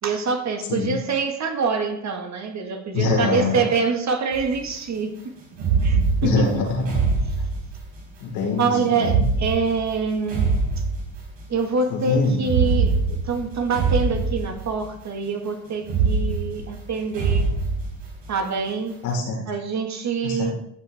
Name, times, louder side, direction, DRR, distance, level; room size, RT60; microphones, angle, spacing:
voice 1, 0.0-5.2 5.8-6.6 8.6-10.5 10.8-10.9 11.5-17.5 18.3-19.0 19.5-20.5, right 5 dB, 45° right, 5 dB, 1.9 m, -25 dB
voice 2, 2.9-3.6 6.2-7.0 8.2-9.2 11.9-12.4 14.1-14.2 19.0-19.4 20.2-20.5, left 3 dB, 90° left, -3 dB, 4.5 m, -24 dB
sound 1, 4.3-4.6 5.5-8.0 8.9-11.5 12.4-15.0 15.8-18.4, right 4 dB, 80° right, 5.1 m, -24 dB
15.0 x 7.9 x 3.6 m, 0.74 s
supercardioid pair, 80°, 39 cm